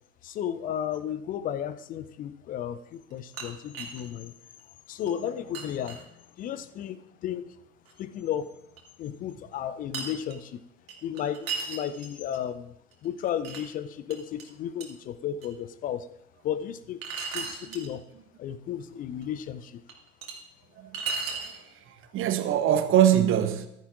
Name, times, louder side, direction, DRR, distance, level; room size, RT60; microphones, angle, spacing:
voice 1, 0.2-4.3 4.9-7.4 8.0-8.5 9.0-10.6 11.0-12.7 13.0-16.1 16.4-17.0 17.3-18.0 18.4-19.8, left 9 dB, 20° left, 0.5 m, -33 dB
sound 1, 3.1-4.1 4.6-4.7 5.1-5.2 5.5-6.1 7.9-8.0 8.8-8.9 9.9-10.4 10.9-12.4 12.9-13.6 14.1-14.4 14.8-14.9 15.4-15.5 17.0-17.9 19.2-19.3 19.9-20.4 20.9-21.6, right 5 dB, 65° right, 2.5 m, -35 dB
voice 2, 20.8-21.2 21.4-23.7, right 10 dB, 30° right, 1.0 m, -24 dB
14.5 x 13.0 x 2.5 m
figure-of-eight pair, 80°, 44 cm